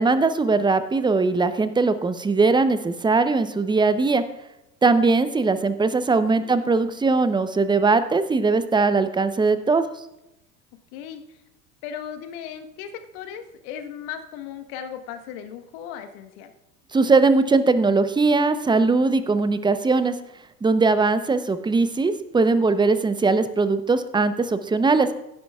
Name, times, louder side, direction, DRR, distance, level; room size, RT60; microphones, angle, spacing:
voice 1, 0.0-4.2 4.8-9.9 16.9-20.1 20.6-25.1, right 3 dB, 10° right, 11 dB, 0.7 m, -20 dB
voice 2, 6.3-6.7 10.9-11.4 11.8-16.5, left 8 dB, 55° left, 7 dB, 1.4 m, -37 dB
16.5 x 9.8 x 2.4 m, 0.89 s
figure-of-eight pair, 80°, 48 cm